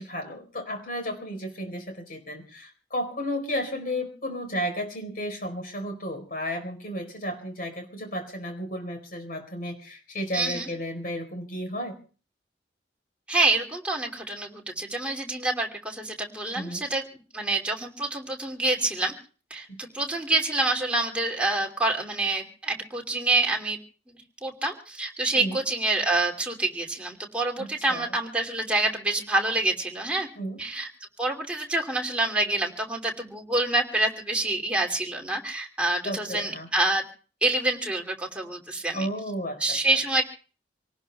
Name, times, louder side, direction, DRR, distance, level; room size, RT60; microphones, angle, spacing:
voice 1, 0.0-12.0 16.5-16.8 19.7-19.8 25.3-25.6 27.6-28.1 30.4-30.6 36.0-36.7 38.9-39.8, equal, 50° left, 5 dB, 4.4 m, -33 dB
voice 2, 10.3-10.7 13.3-17.0 17.3-19.1 19.5-23.8 24.4-30.3 30.6-30.9 31.2-37.0 37.4-39.1 39.6-40.2, right 2 dB, 5° right, -1 dB, 2.6 m, -27 dB
27.0 x 18.5 x 2.3 m, 0.38 s
head